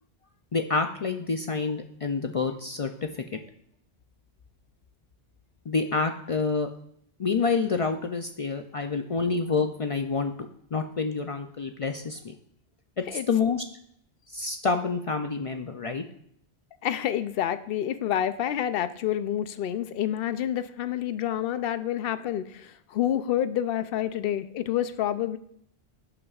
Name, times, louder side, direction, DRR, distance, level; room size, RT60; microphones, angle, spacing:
voice 1, 0.5-3.4 5.7-6.7 7.2-10.3 10.7-12.3 13.1-13.6 14.3-16.0, left 4 dB, 50° left, 6 dB, 0.4 m, -28 dB
voice 2, 16.8-25.4, left 11 dB, 65° left, 12 dB, 0.7 m, -28 dB
11.0 x 8.0 x 2.4 m, 0.70 s
omnidirectional pair, 1.1 m